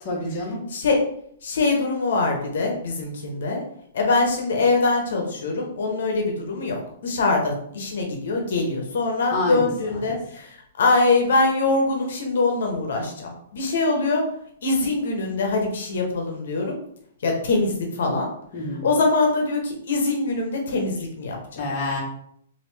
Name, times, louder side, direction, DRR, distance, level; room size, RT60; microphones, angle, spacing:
voice 1, 0.0-0.6 9.3-10.1 18.5-18.9 21.6-22.0, left 2 dB, 25° left, -4 dB, 0.9 m, -28 dB
voice 2, 1.4-3.6 3.9-10.5 10.8-14.2 14.6-16.7 17.2-18.3 18.8-21.6, left 3 dB, 65° left, 1 dB, 0.8 m, -23 dB
3.2 x 2.6 x 3.2 m, 0.70 s
hypercardioid pair, 170°, 0 cm